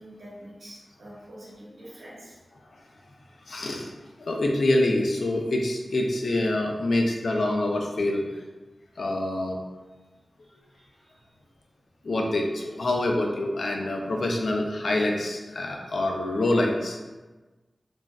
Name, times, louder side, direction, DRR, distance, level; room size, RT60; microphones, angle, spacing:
voice 1, 0.0-2.4 10.0-10.1 10.4-11.3, equal, 80° right, -6 dB, 0.9 m, -47 dB
voice 2, 3.5-3.9 4.2-8.3 9.0-9.6 12.0-17.0, left 1 dB, 80° left, 1 dB, 0.4 m, -26 dB
3.2 x 2.5 x 2.2 m, 1.2 s
wide cardioid pair, 90°, 0 cm